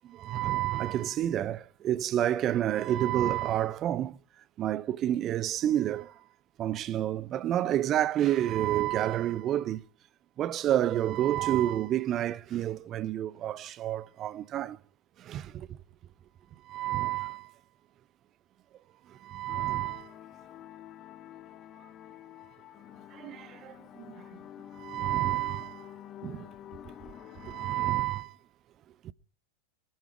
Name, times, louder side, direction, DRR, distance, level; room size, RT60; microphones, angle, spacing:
voice 1, 0.1-4.2 4.6-6.1 6.6-9.8 10.4-14.8 15.2-15.7 16.7-17.5 19.2-20.1 23.1-24.1 24.8-25.9 26.2-26.5 27.4-28.3 29.0-29.1, right 12 dB, 30° right, 0.7 m, -29 dB
sound 1, 19.5-27.9, left 11 dB, 30° left, 0.6 m, -48 dB
20.5 x 12.5 x 4.6 m
figure-of-eight pair, 90°, 0 cm